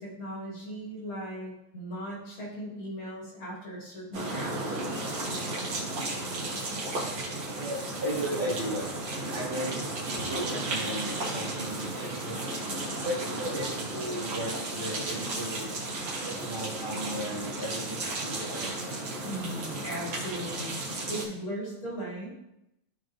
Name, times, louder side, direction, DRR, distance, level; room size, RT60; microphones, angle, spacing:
voice 1, 0.0-4.9 19.2-22.3, equal, 70° left, -5 dB, 3.3 m, -38 dB
sound 1, 4.1-21.3, right 2 dB, 65° right, 2.2 m, -34 dB
voice 2, 7.6-8.9 9.3-9.9 10.3-12.6 13.0-15.7 16.2-18.7, equal, 25° right, -5 dB, 2.0 m, -35 dB
13.0 x 4.5 x 2.5 m, 0.86 s
omnidirectional pair, 2.4 m